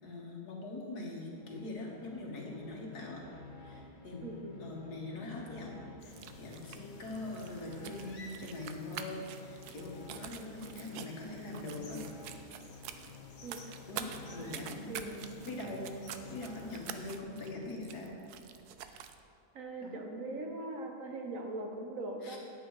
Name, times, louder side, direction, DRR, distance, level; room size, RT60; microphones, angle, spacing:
voice 1, 0.0-3.2 3.6-4.3 4.6-12.0 13.9-15.9 16.3-18.1 19.8-20.0 22.2-22.4, left 2 dB, 85° left, -2 dB, 2.2 m, -43 dB
sound 1, 1.2-18.0, left 4 dB, 40° left, 0.8 m, -52 dB
voice 2, 4.2-4.6 13.4-13.6 14.4-14.5 14.9-15.3 19.5-22.4, right 2 dB, 60° right, 2 dB, 1.4 m, -41 dB
sound 2, 6.0-17.2, left 2 dB, 65° left, 1.4 m, -57 dB
sound 3, 6.0-19.2, right 9 dB, 90° right, 1.1 m, -48 dB
9.2 x 9.0 x 4.8 m, 2.3 s
omnidirectional pair, 1.6 m